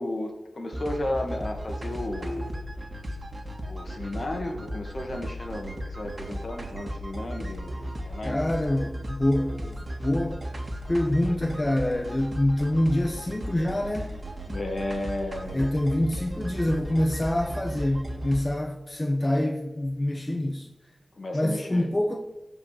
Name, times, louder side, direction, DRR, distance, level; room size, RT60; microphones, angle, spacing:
voice 1, 0.0-2.6 3.7-8.5 14.5-15.7 21.2-21.9, left 1 dB, 55° left, 2.1 m, -33 dB
sound 1, 0.7-18.5, equal, 45° right, 2.1 m, -35 dB
voice 2, 8.2-10.4 10.9-14.2 15.5-20.7 21.3-22.2, left 1 dB, 25° left, 1.2 m, -26 dB
15.0 x 5.2 x 6.7 m
cardioid pair, 55°, 0 cm